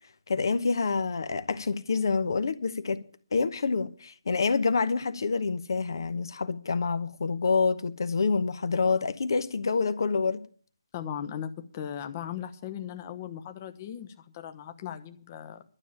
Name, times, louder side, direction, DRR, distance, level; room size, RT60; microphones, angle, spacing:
voice 1, 0.3-3.0 3.3-10.4, left 4 dB, 55° left, 1.0 m, -27 dB
voice 2, 10.9-15.6, left 9 dB, 30° left, 1.0 m, -38 dB
12.0 x 7.1 x 8.6 m
figure-of-eight pair, 145°, 3 cm